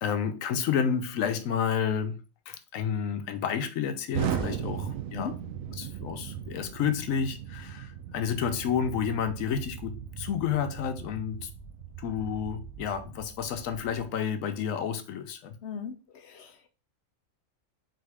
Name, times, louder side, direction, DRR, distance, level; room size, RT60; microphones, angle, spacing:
voice 1, 0.0-2.2 2.5-5.3 5.8-11.5 12.0-15.5, left 7 dB, 90° left, 1.0 m, -30 dB
Explosion, 4.1-14.1, right 9 dB, 85° right, 1.1 m, -38 dB
voice 2, 15.6-16.7, left 7 dB, 65° left, 0.8 m, -38 dB
3.8 x 3.5 x 3.3 m
omnidirectional pair, 1.4 m